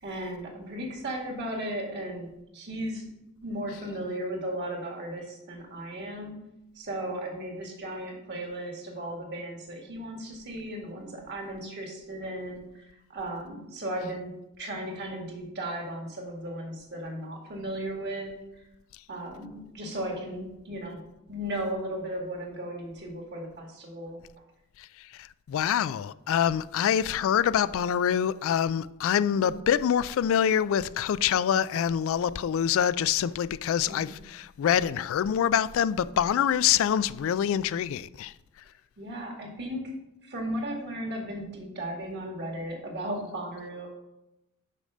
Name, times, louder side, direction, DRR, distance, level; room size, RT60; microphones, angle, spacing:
voice 1, 0.0-3.1 3.4-6.3 6.7-14.3 14.6-18.6 19.1-21.0 21.3-24.2 29.3-29.6 33.9-34.1 39.0-39.9 40.2-43.9, right 1 dB, 55° right, 2.0 m, -36 dB
voice 2, 25.2-38.3, left 9 dB, 65° left, 0.3 m, -25 dB
6.5 x 5.3 x 6.4 m
head